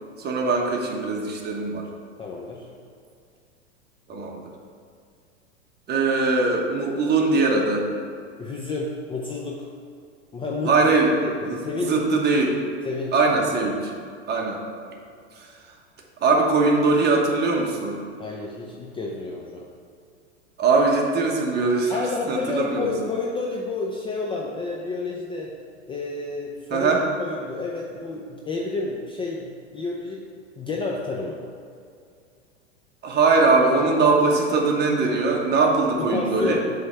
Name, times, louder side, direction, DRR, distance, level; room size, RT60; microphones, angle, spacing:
voice 1, 0.2-1.9 4.1-4.4 5.9-7.8 10.6-11.1 11.4-12.6 13.1-13.9 14.3-14.6 15.4-15.5 16.2-18.0 20.6-22.9 26.7-27.0 33.0-36.6, right 3 dB, 25° right, 0 dB, 1.2 m, -21 dB
voice 2, 2.2-2.7 8.4-9.7 10.3-10.9 11.2-12.0 12.8-13.2 18.2-19.7 21.9-25.5 25.9-30.2 30.6-31.4 36.0-36.6, left 3 dB, 15° left, -2 dB, 0.5 m, -30 dB
7.6 x 3.4 x 5.5 m, 2.3 s
hypercardioid pair, 105°, 36 cm